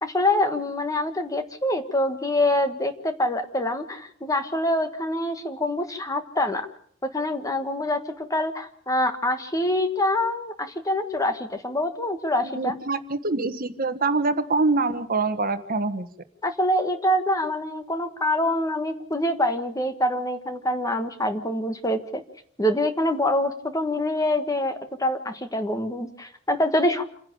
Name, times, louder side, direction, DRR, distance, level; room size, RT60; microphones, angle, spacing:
voice 1, 0.0-6.7 7.0-12.7 16.4-22.2 22.6-27.0, left 1 dB, 15° left, 8 dB, 1.4 m, -25 dB
voice 2, 12.4-16.1, right 3 dB, 45° right, 10 dB, 1.3 m, -25 dB
28.0 x 10.5 x 8.6 m, 0.63 s
head